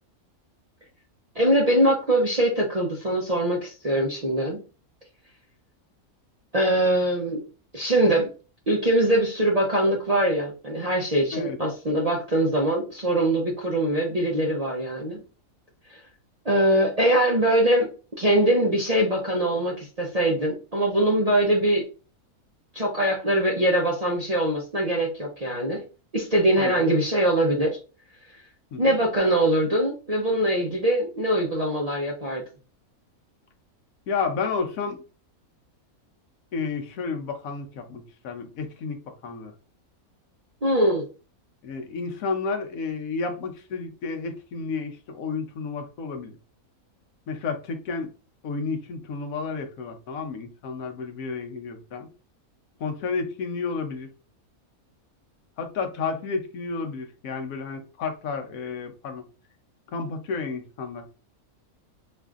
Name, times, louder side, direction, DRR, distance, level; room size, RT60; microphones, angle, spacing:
voice 1, 1.3-4.6 6.5-7.4 7.7-8.3 8.7-15.2 15.9-16.0 16.4-17.9 18.2-21.8 22.7-25.8 26.1-27.8 28.8-32.4 40.6-41.0, right 1 dB, 40° right, 0.5 m, -22 dB
voice 2, 34.1-35.0 36.5-39.5 41.6-46.4 47.3-48.1 48.4-52.1 52.8-54.1 55.6-59.3 59.9-61.1, left 4 dB, 75° left, 1.1 m, -31 dB
4.7 x 2.5 x 2.4 m
omnidirectional pair, 1.5 m